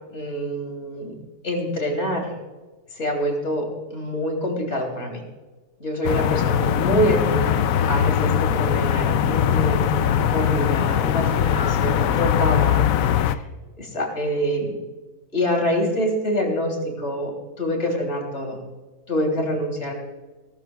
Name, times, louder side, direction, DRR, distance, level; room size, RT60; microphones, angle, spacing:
voice 1, 0.1-1.1 1.4-2.3 2.9-5.2 5.8-7.6 7.9-13.4 13.8-14.7 15.3-17.3 17.6-18.6 19.1-19.9, equal, 45° left, 1 dB, 3.4 m, -26 dB
sound 1, 6.0-13.4, left 9 dB, 70° left, 1.0 m, -21 dB
18.5 x 13.5 x 2.3 m, 1.2 s
omnidirectional pair, 1.6 m